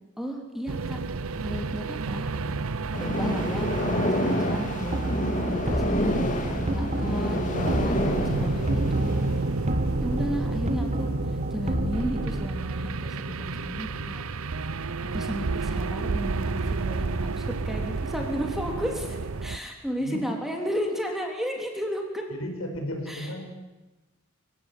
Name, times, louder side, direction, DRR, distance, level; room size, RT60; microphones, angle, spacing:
voice 1, 0.2-1.0 1.4-2.5 3.0-5.0 5.4-9.3 10.0-11.1 11.5-14.3 15.1-22.2 23.1-23.5, equal, ahead, 2 dB, 3.4 m, -33 dB
sound 1, 0.7-19.6, right 3 dB, 80° right, 0.8 m, -31 dB
sound 2, 2.9-9.3, left 1 dB, 40° left, 2.8 m, -29 dB
sound 3, 4.9-12.5, right 1 dB, 30° right, 1.7 m, -30 dB
voice 2, 22.4-23.5, equal, 80° left, 4 dB, 5.4 m, -34 dB
24.0 x 16.0 x 9.9 m, 1.1 s
head